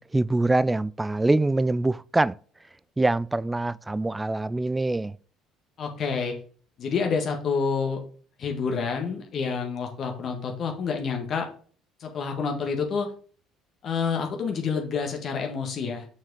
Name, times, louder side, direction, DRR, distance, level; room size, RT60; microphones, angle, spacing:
voice 1, 0.0-2.4 3.0-5.2, right 2 dB, 15° right, 0.3 m, -24 dB
voice 2, 5.8-6.3 6.8-8.0 8.4-11.5 12.0-13.1 13.8-16.1, left 5 dB, 55° left, 1.6 m, -28 dB
6.2 x 4.6 x 4.7 m
supercardioid pair, 70°, 0 cm